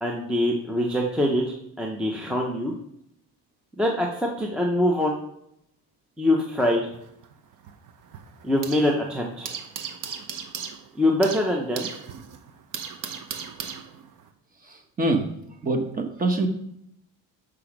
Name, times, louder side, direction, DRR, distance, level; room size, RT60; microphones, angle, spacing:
voice 1, 0.0-1.4 1.8-2.7 3.8-5.2 6.2-6.9 8.4-9.6 11.0-11.9, left 1 dB, 5° right, 0 dB, 0.6 m, -24 dB
sound 1, 6.9-9.0 9.2-14.3, right 7 dB, 50° right, 0.8 m, -37 dB
voice 2, 15.6-16.5, right 2 dB, 20° right, 3 dB, 0.9 m, -23 dB
6.9 x 4.9 x 5.9 m, 0.78 s
cardioid pair, 165°, 39 cm